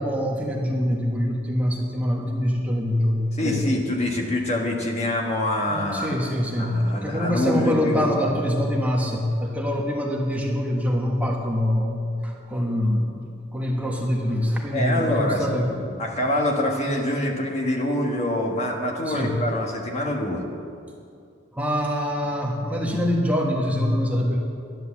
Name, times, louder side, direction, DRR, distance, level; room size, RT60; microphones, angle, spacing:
voice 1, 0.0-3.7 5.7-15.8 19.1-19.3 21.5-24.4, equal, 10° right, -1 dB, 1.3 m, -24 dB
voice 2, 3.3-6.2 6.6-8.3 14.7-20.4, left 1 dB, 35° left, 0 dB, 1.5 m, -25 dB
12.0 x 10.5 x 7.2 m, 2.4 s
head